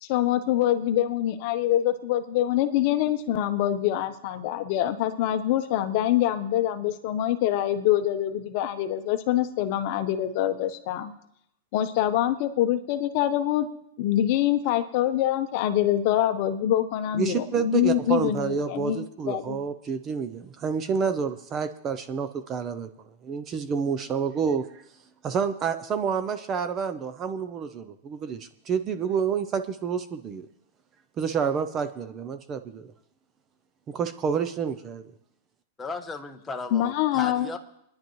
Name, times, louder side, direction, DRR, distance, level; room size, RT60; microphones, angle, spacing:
voice 1, 0.0-11.1 11.7-13.7 14.0-19.0 19.3-19.6 36.7-37.5, left 12 dB, 40° left, 9 dB, 0.8 m, -25 dB
voice 2, 17.1-24.8 25.2-30.5 31.2-32.9 33.9-35.0, right 6 dB, 20° right, 10 dB, 0.5 m, -29 dB
voice 3, 35.8-37.6, left 3 dB, 10° left, 4 dB, 0.9 m, -36 dB
24.0 x 10.5 x 3.1 m, 0.77 s
supercardioid pair, 170°, 0 cm